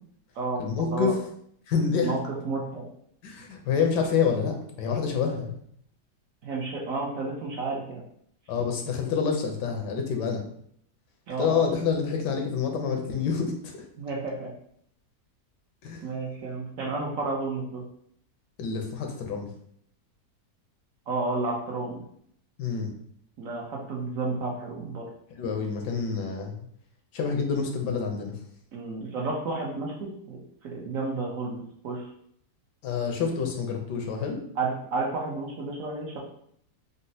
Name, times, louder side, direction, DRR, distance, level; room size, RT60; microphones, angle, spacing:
voice 1, 0.6-1.1 1.7-2.1 3.2-5.6 8.5-10.4 11.4-13.9 15.8-16.1 18.6-19.5 22.6-22.9 25.4-26.5 27.1-28.4 32.8-34.4, left 6 dB, 85° left, 3 dB, 1.3 m, -27 dB
voice 2, 2.4-2.8 6.4-8.0 11.3-11.6 14.0-14.5 16.0-17.8 21.1-22.0 23.4-25.1 28.7-32.1 34.6-36.2, right 3 dB, 65° right, -2 dB, 0.9 m, -31 dB
4.0 x 2.1 x 2.6 m, 0.66 s
omnidirectional pair, 1.8 m